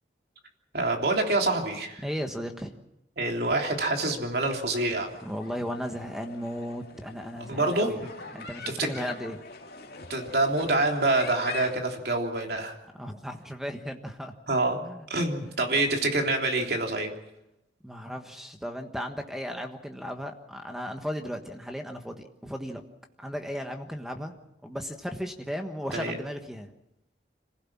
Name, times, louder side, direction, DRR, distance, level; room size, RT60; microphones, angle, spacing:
voice 1, 0.7-2.0 3.2-5.1 7.5-8.1 8.6-8.9 10.1-12.7 14.5-14.8 15.1-17.1 25.9-26.2, right 2 dB, 60° right, 2 dB, 3.3 m, -26 dB
voice 2, 2.0-2.7 5.2-8.0 8.3-9.4 12.9-14.3 14.8-15.0 17.8-22.8 23.2-24.3 24.6-26.7, equal, ahead, 5 dB, 1.3 m, -35 dB
sound 1, 5.0-11.8, left 4 dB, 60° left, 2.6 m, -43 dB
27.0 x 16.0 x 7.3 m, 0.88 s
head